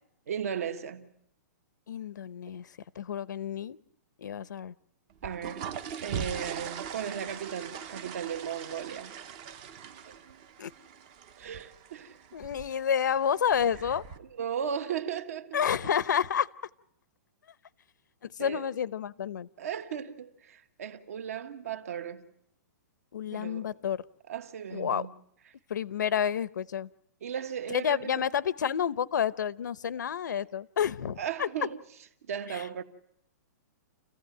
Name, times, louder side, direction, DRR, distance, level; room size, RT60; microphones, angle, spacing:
voice 1, 0.3-1.1 5.2-5.7 6.0-9.2 10.0-10.2 11.4-12.2 14.2-15.9 18.4-18.7 19.6-22.3 23.3-23.7 24.3-25.1 27.2-28.2 31.2-31.8 32.2-32.8, right 8 dB, 55° right, 1.6 m, -36 dB
voice 2, 1.9-2.7 3.0-3.8 4.2-4.7 10.6-10.7 12.3-14.0 15.5-16.5 18.2-19.5 23.1-24.0 24.7-25.0 25.7-26.9 27.7-31.5 32.5-32.6, left 8 dB, 80° left, 0.8 m, -29 dB
sound 1, 5.1-14.2, right 7 dB, 25° right, 0.8 m, -41 dB
29.0 x 15.5 x 9.0 m
hypercardioid pair, 180°, 10 cm